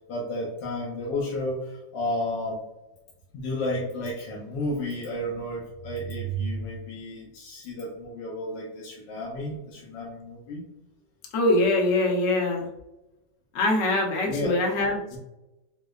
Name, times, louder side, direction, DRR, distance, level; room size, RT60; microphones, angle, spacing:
voice 1, 0.1-2.6 3.3-10.6 14.3-14.6 15.1-15.2, left 1 dB, 80° left, -3 dB, 1.4 m, -32 dB
voice 2, 11.3-12.7 13.5-15.2, left 2 dB, 55° left, -1 dB, 0.8 m, -23 dB
4.7 x 2.0 x 2.3 m, 0.95 s
omnidirectional pair, 2.0 m